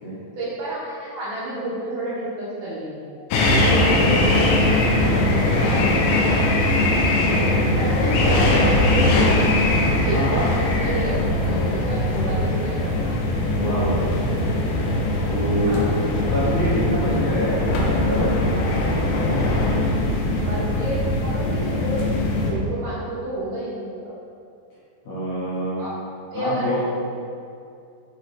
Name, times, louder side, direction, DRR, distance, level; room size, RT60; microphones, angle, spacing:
voice 1, 0.4-3.2 3.5-6.4 7.6-11.2 11.5-13.4 15.4-16.2 16.9-17.1 20.5-24.2 25.8-26.0 26.3-26.8, right 1 dB, 75° right, -8 dB, 2.0 m, -30 dB
sound 1, 3.3-22.5, left 1 dB, 90° left, 3.1 m, -20 dB
voice 2, 6.9-7.7 10.1-10.5 13.6-14.5 15.3-15.9 16.3-18.4 25.1-25.8 26.3-26.8, equal, 70° left, -11 dB, 1.8 m, -27 dB
7.8 x 5.0 x 3.2 m, 2.5 s
omnidirectional pair, 5.1 m